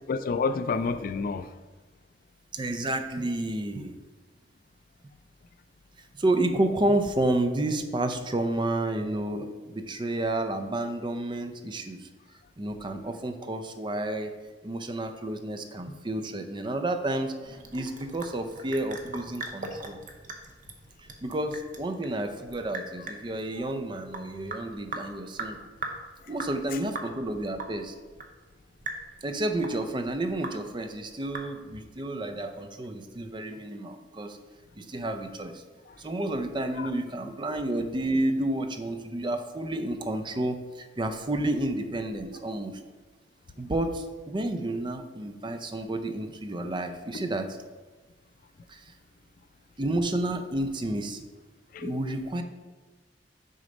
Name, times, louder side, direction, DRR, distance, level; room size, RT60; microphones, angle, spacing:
voice 1, 0.1-1.5 26.2-26.3 26.7-26.8 35.9-36.0 36.8-36.9 51.7-52.1, left 4 dB, 50° left, 12 dB, 0.3 m, -30 dB
voice 2, 2.5-4.0 6.1-12.1 12.6-14.4 14.6-20.0 21.2-25.6 26.3-27.9 29.2-34.4 34.8-35.6 36.0-42.8 43.6-47.5 48.7-48.8 49.8-51.2 51.8-52.4, right 1 dB, 25° right, 7 dB, 0.5 m, -30 dB
Sink (filling or washing) / Drip, 17.4-31.9, right 2 dB, 45° right, 0.8 m, -41 dB
6.5 x 4.0 x 5.1 m, 1.3 s
head